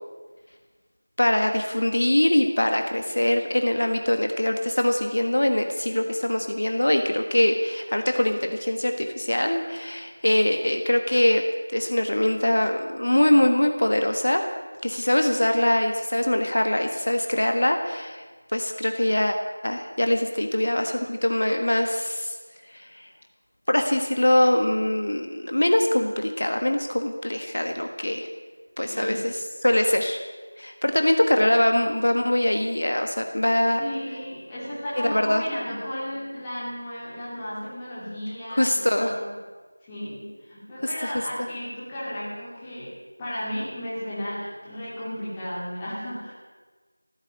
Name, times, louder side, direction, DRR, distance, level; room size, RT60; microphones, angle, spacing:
voice 1, 1.2-11.4 11.7-14.4 14.8-18.2 18.5-19.4 19.6-22.3 22.7-23.0 23.7-28.3 28.8-29.3 29.6-30.2 30.6-33.8 35.0-35.4 38.5-39.2, left 1 dB, 60° left, 5 dB, 1.5 m, -23 dB
voice 2, 28.9-29.3 33.8-39.3 39.8-46.3, equal, 10° left, -10 dB, 2.9 m, -34 dB
15.0 x 9.1 x 9.0 m, 1.4 s
figure-of-eight pair, 175°, 0 cm